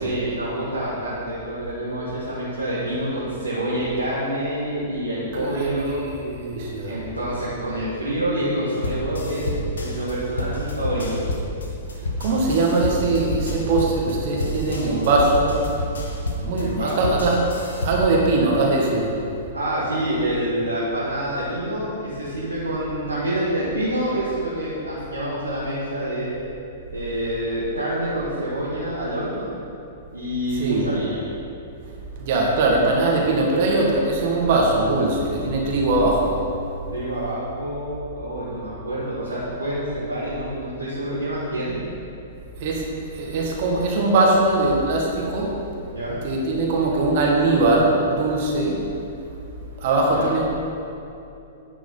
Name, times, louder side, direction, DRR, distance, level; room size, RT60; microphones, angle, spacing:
voice 1, 0.0-6.0 6.8-9.5 9.7-11.2 16.6-17.2 19.5-26.3 26.9-29.5 30.1-31.2 36.9-41.8 45.9-46.2 50.1-50.4, right 1 dB, 85° right, -9 dB, 2.0 m, -27 dB
voice 2, 5.4-6.9 12.2-15.7 16.4-17.4 17.8-19.1 30.6-30.9 32.2-36.4 42.6-45.6 46.2-48.8 49.8-50.4, right 2 dB, 50° right, -1 dB, 1.9 m, -21 dB
sound 1, 8.7-18.2, left 1 dB, 75° left, 1.3 m, -29 dB
10.0 x 6.1 x 5.7 m, 2.8 s
figure-of-eight pair, 105°, 0 cm